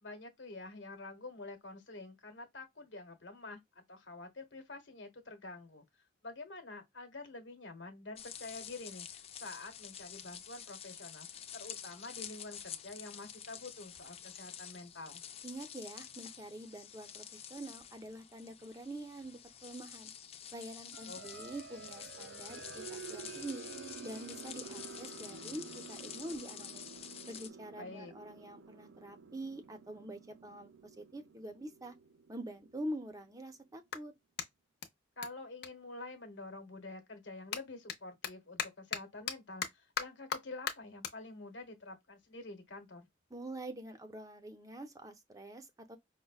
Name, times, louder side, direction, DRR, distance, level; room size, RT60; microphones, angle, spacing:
voice 1, 0.0-5.8 6.2-11.3 11.5-15.2 21.1-21.2 27.8-28.1 35.2-43.1, left 2 dB, 90° left, 1.2 m, -48 dB
sound 1, 8.2-27.5, left 9 dB, 35° left, 0.4 m, -49 dB
voice 2, 15.4-20.1 20.5-23.7 24.0-26.9 27.3-30.7 31.0-32.0 32.3-34.1 43.3-46.0, right 1 dB, 20° right, 0.6 m, -45 dB
sound 2, 20.9-33.4, right 5 dB, 85° right, 0.5 m, -51 dB
Clapping, 31.8-31.9 32.5-36.6 36.9-43.5, left 7 dB, 60° left, 0.7 m, -43 dB
5.2 x 2.1 x 2.3 m
head